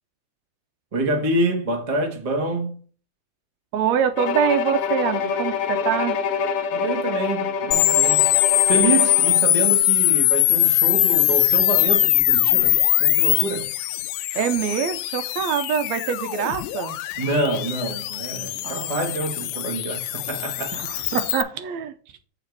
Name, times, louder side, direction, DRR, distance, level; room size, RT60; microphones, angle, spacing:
voice 1, 0.9-2.8 6.7-13.7 17.2-20.9, right 2 dB, 30° right, 0.6 m, -27 dB
voice 2, 3.7-6.2 14.4-17.0 18.6-19.0 20.8-21.9, right 8 dB, 75° right, 1.9 m, -24 dB
Bowed string instrument, 4.2-9.5, left 6 dB, 70° left, 1.5 m, -26 dB
sound 1, 7.7-21.4, left 15 dB, 85° left, 2.0 m, -21 dB
7.7 x 5.0 x 4.7 m
omnidirectional pair, 3.4 m